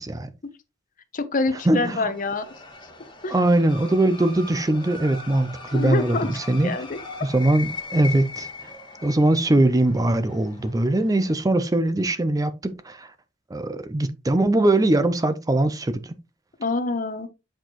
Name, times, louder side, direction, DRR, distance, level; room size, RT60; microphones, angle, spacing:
voice 1, 1.1-2.4 3.2-3.3 5.7-6.3 6.6-7.0 16.6-17.3, left 3 dB, 45° left, 0.8 m, -25 dB
sound 1, 1.4-11.3, left 3 dB, 25° left, 1.5 m, -40 dB
voice 2, 1.7-2.1 3.3-6.7 7.2-8.7 9.0-13.1 13.5-16.1, right 1 dB, 20° right, 0.5 m, -21 dB
7.9 x 4.4 x 3.0 m
head